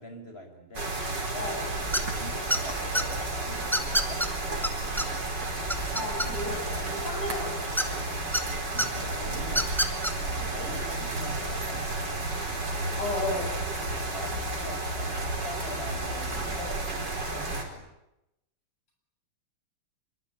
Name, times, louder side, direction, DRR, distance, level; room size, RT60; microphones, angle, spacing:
voice 1, 0.0-1.6 2.0-5.3 8.4-12.6 13.9-17.8, equal, 25° left, 5 dB, 6.1 m, -44 dB
sound 1, 0.7-17.6, right 2 dB, 50° right, 5.4 m, -32 dB
sound 2, 1.2-9.7, right 4 dB, 65° right, 4.8 m, -48 dB
sound 3, 1.9-2.2 2.5-3.0 3.7-4.3 4.6-4.7 5.0-5.1 5.4-6.6 7.8-8.4 8.8-8.9 9.5-10.1, equal, ahead, 1.9 m, -26 dB
voice 2, 5.9-7.6 7.8-8.0 13.0-13.5, left 2 dB, 80° left, 1 dB, 9.0 m, -33 dB
25.5 x 23.5 x 9.8 m, 0.89 s
omnidirectional pair, 2.4 m